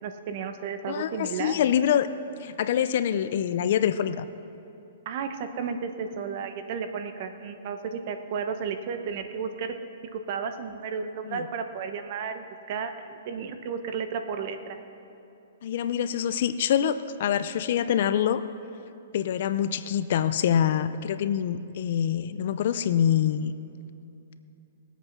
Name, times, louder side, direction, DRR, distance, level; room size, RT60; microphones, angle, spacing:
voice 1, 0.0-1.6 5.0-9.7 10.1-14.8, right 6 dB, 45° right, 8 dB, 1.0 m, -33 dB
voice 2, 0.9-2.1 2.4-4.3 11.2-11.5 15.6-18.4 19.1-23.5, left 9 dB, 55° left, 12 dB, 0.5 m, -25 dB
19.5 x 8.2 x 5.9 m, 2.8 s
hypercardioid pair, 160°, 0 cm